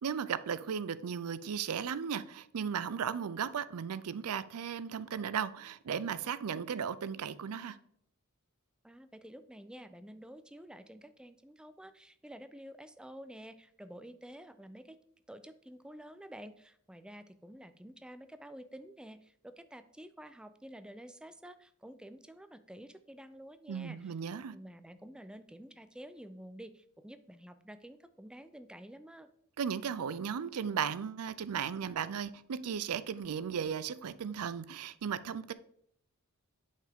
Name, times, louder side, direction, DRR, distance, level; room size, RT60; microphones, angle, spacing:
voice 1, 0.0-7.8 23.7-24.6 29.6-35.5, right 7 dB, 85° right, 0.4 m, -36 dB
voice 2, 8.8-15.0 15.3-24.1 24.5-29.3, equal, 5° right, 0.4 m, -50 dB
7.4 x 5.7 x 3.6 m
head